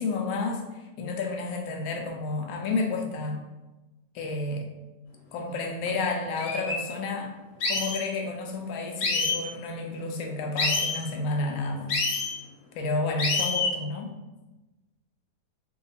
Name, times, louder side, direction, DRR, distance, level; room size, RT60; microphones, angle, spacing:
voice 1, 0.0-3.4 4.1-4.7 5.3-7.3 7.7-12.0 12.7-14.1, left 3 dB, 70° left, 2 dB, 0.9 m, -31 dB
sound 1, 5.9-6.0 6.4-6.8 7.6-8.0 9.0-9.4 10.6-11.0 11.9-12.3 13.2-13.7, left 3 dB, 85° left, 1.3 m, -26 dB
2.8 x 2.3 x 4.1 m, 1.1 s
omnidirectional pair, 1.8 m